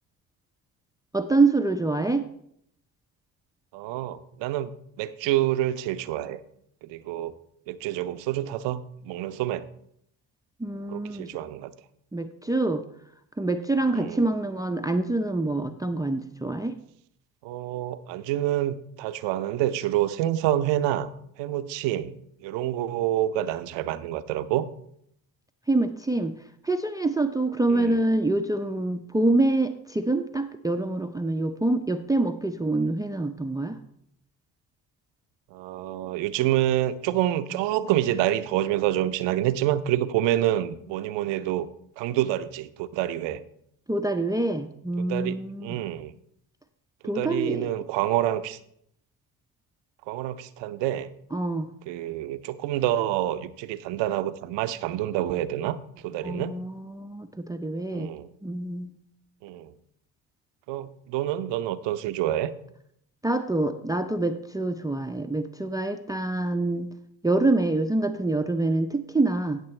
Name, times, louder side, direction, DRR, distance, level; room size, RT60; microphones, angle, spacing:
voice 1, 1.1-2.3 10.6-11.3 12.1-12.8 13.4-16.8 25.7-26.3 26.6-33.8 43.9-45.8 47.0-47.7 51.3-51.7 56.2-58.1 58.4-59.0 63.2-66.9 67.2-69.6, right 2 dB, 10° right, 9 dB, 0.5 m, -26 dB
voice 2, 3.7-6.4 6.8-7.3 7.7-9.7 10.9-11.7 13.9-14.3 17.4-21.1 21.4-24.7 27.7-28.0 35.5-41.7 42.0-43.4 45.0-46.1 47.2-48.6 50.1-51.1 51.9-56.5 57.9-58.3 59.4-59.7 60.7-62.5, right 13 dB, 75° right, 13 dB, 0.7 m, -27 dB
15.5 x 6.7 x 3.2 m, 0.72 s
hypercardioid pair, 55°, 45 cm